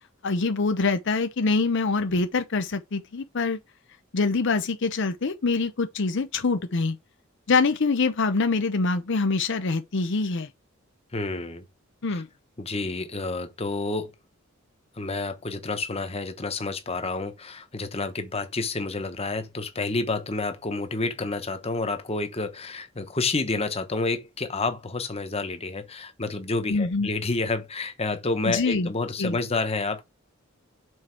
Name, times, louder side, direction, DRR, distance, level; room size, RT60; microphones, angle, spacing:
voice 1, 0.2-3.6 4.1-7.0 7.5-10.5 12.0-12.3 26.7-27.1 28.5-28.9 29.2-29.4, left 4 dB, 60° left, 0.7 m, -25 dB
voice 2, 11.1-11.6 12.1-12.2 12.6-14.1 15.0-30.0, left 3 dB, 30° left, 1.1 m, -29 dB
6.4 x 4.3 x 4.8 m
head